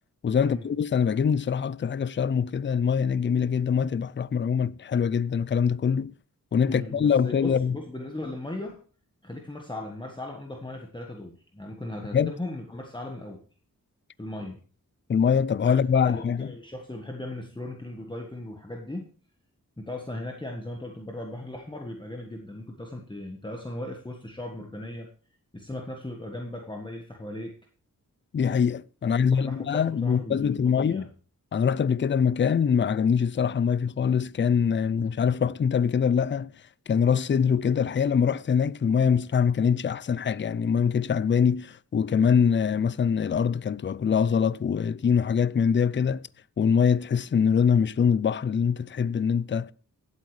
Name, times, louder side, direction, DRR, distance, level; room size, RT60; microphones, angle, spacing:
voice 1, 0.2-6.1 6.5-7.8 12.1-12.3 15.1-16.5 28.3-31.1 31.5-36.5 36.9-46.2 46.6-49.7, left 7 dB, 35° left, 0.4 m, -24 dB
voice 2, 6.6-8.8 9.2-13.4 14.2-14.6 15.7-19.1 19.8-25.1 25.5-27.6 29.0-31.1, left 1 dB, 15° left, 1.4 m, -37 dB
16.5 x 8.2 x 3.3 m
wide cardioid pair, 85°, 34 cm